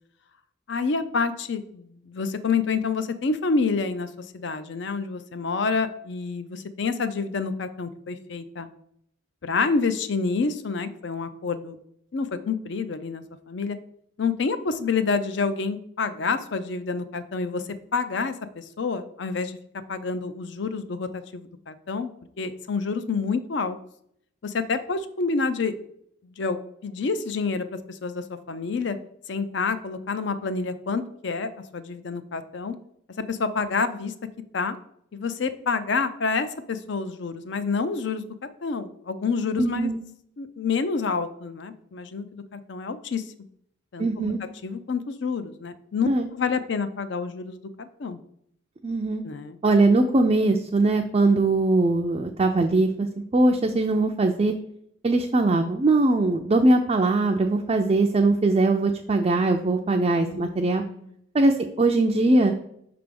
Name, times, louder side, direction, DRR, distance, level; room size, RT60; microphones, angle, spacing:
voice 1, 0.7-8.7 9.4-11.8 12.1-13.8 14.2-17.6 17.9-19.6 19.9-22.1 22.4-23.8 24.4-25.7 26.2-29.0 29.3-32.8 33.3-34.1 34.5-34.8 35.1-38.2 38.6-39.9 40.4-43.2 43.9-44.3 44.6-48.2 49.2-49.6 60.2-60.5 60.9-61.1, left 4 dB, 55° left, 12 dB, 0.5 m, -28 dB
voice 2, 39.6-40.0 44.0-44.4 46.1-46.3 48.8-49.2 49.6-53.1 53.3-54.5 55.0-60.8 61.3-62.5, right 2 dB, 30° right, 2 dB, 0.3 m, -21 dB
5.9 x 3.4 x 5.2 m, 0.71 s
head